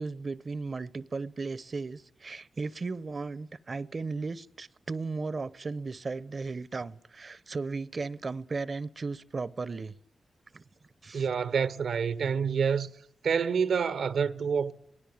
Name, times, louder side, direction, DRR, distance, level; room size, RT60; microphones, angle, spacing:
voice 1, 0.0-9.9 10.5-10.6 11.0-11.3, right 4 dB, 50° right, 0.9 m, -36 dB
voice 2, 11.1-12.9 13.2-14.7, right 6 dB, 80° right, 1.0 m, -27 dB
24.0 x 18.5 x 8.7 m
supercardioid pair, 40°, 0 cm